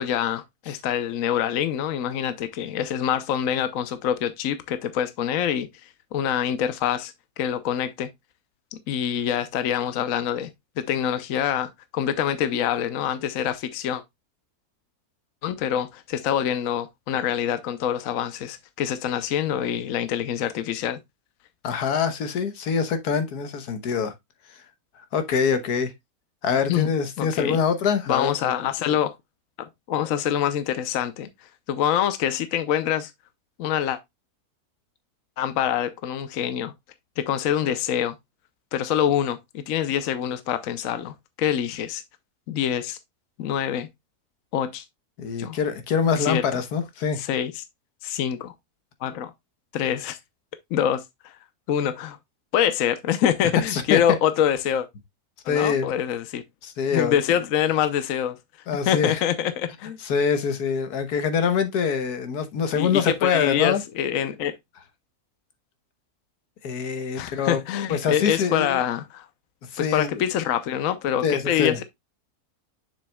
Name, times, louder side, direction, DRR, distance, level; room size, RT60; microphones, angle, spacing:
voice 1, 0.0-5.7 6.1-8.1 8.9-10.5 10.8-14.0 15.4-21.0 26.7-26.9 27.2-27.6 28.1-29.2 29.6-31.3 31.7-33.1 33.6-34.0 35.4-36.7 37.2-38.2 38.7-42.0 42.5-43.0 43.4-43.9 44.5-44.8 45.4-45.6 46.2-46.4 47.2-47.6 48.0-48.5 49.0-49.3 49.7-50.2 50.7-51.3 51.7-52.2 52.5-54.9 55.4-56.4 56.9-58.4 58.9-60.0 62.8-64.6 67.2-69.3 69.8-71.8, left 9 dB, 65° left, 1.1 m, -25 dB
voice 2, 21.6-24.1 24.5-24.6 25.1-25.9 26.4-28.5 45.2-47.2 53.7-54.0 55.5-55.9 56.6-57.2 58.7-59.2 60.0-63.8 66.6-67.6 67.9-68.8 69.7-70.2 71.2-71.8, left 6 dB, 90° left, 1.6 m, -24 dB
7.1 x 6.3 x 2.2 m
omnidirectional pair, 1.6 m